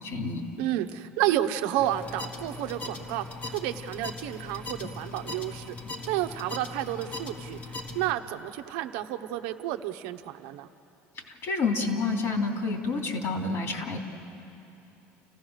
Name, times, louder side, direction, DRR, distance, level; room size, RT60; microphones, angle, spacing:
voice 1, 0.0-0.5 11.3-14.0, left 3 dB, 50° left, 2 dB, 3.2 m, -29 dB
voice 2, 0.6-5.8 6.0-7.6 7.9-10.7, right 13 dB, 80° right, 7 dB, 0.9 m, -31 dB
sound 1, 1.8-8.1, left 3 dB, 30° left, 1.4 m, -39 dB
30.0 x 15.5 x 6.4 m, 2.8 s
cardioid pair, 125°, 6 cm